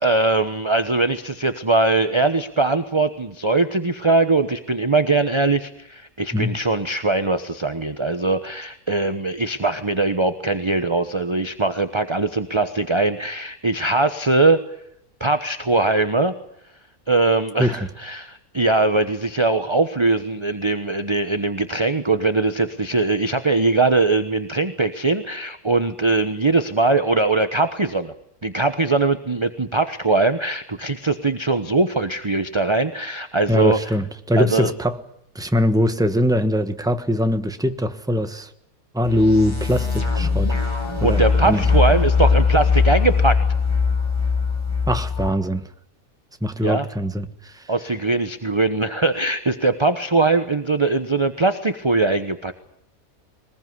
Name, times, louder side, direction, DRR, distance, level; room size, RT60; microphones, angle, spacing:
voice 1, 0.0-14.6 15.2-16.3 17.1-28.1 28.4-33.9 34.4-34.7 41.0-43.4 46.6-46.9 47.7-52.5, right 3 dB, 20° right, 1.0 m, -21 dB
voice 2, 33.5-35.0 35.3-38.5 38.9-40.5 41.0-41.7 44.9-45.6 46.4-47.7, left 1 dB, 5° right, 1.3 m, -22 dB
sound 1, 39.0-45.3, left 5 dB, 20° left, 4.6 m, -20 dB
22.5 x 20.5 x 9.6 m
omnidirectional pair, 1.6 m